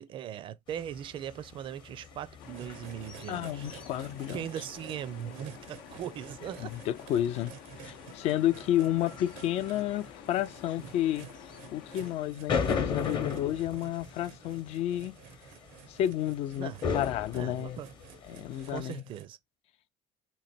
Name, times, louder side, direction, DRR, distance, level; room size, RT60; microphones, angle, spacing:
voice 1, 0.0-3.7 4.3-6.7 10.8-10.9 16.6-16.8 17.3-17.9 18.7-19.4, right 10 dB, 45° right, 0.4 m, -39 dB
sound 1, 0.7-18.8, left 6 dB, 40° left, 0.8 m, -39 dB
sound 2, 2.4-12.2, left 9 dB, 90° left, 0.7 m, -50 dB
sound 3, 2.5-19.2, right 9 dB, 85° right, 0.6 m, -52 dB
voice 2, 3.3-4.5 6.6-11.3 11.7-15.2 15.9-17.8 18.3-19.0, left 12 dB, 60° left, 0.4 m, -31 dB
3.0 x 2.9 x 4.2 m
cardioid pair, 125°, 12 cm